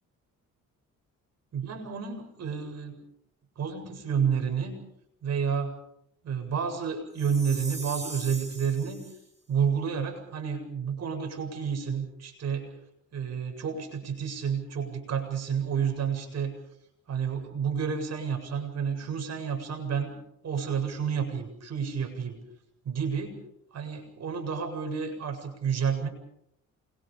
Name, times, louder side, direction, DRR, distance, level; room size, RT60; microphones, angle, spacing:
voice 1, 1.5-3.0 3.6-4.7 5.2-5.7 6.2-9.0 9.5-12.7 13.1-16.5 17.1-20.2 20.4-22.4 22.8-23.4 23.7-26.1, right 7 dB, 60° right, 4 dB, 7.7 m, -30 dB
Chime, 7.2-9.2, right 3 dB, 20° right, 7.6 m, -40 dB
28.0 x 23.5 x 5.3 m, 0.74 s
cardioid pair, 90°, 30 cm